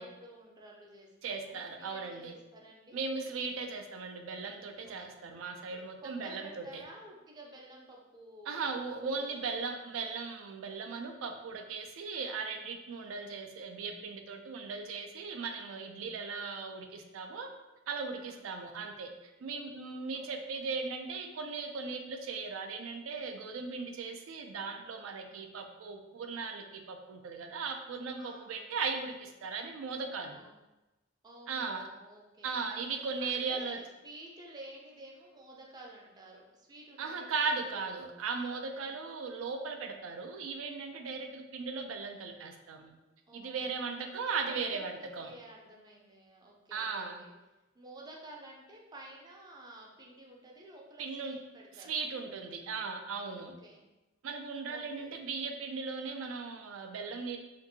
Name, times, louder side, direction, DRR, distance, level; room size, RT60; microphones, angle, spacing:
voice 1, 0.0-3.0 4.8-5.2 5.7-8.7 9.0-9.3 12.9-13.2 18.3-18.6 20.1-20.4 25.2-25.5 28.2-28.7 30.3-30.6 31.2-37.9 38.7-39.0 41.2-41.3 43.3-44.1 44.5-47.3 47.7-51.9 53.4-53.9 54.7-55.1, right 1 dB, 20° right, -2 dB, 0.4 m, -52 dB
voice 2, 1.2-2.4 2.9-6.8 8.5-17.5 17.9-19.1 19.4-30.4 31.5-31.9 32.4-33.8 37.0-42.9 43.3-45.3 46.7-47.2 51.0-51.4 51.8-53.5 54.2-57.4, right 4 dB, 80° right, 5 dB, 0.4 m, -37 dB
2.7 x 2.6 x 2.6 m, 1.0 s
head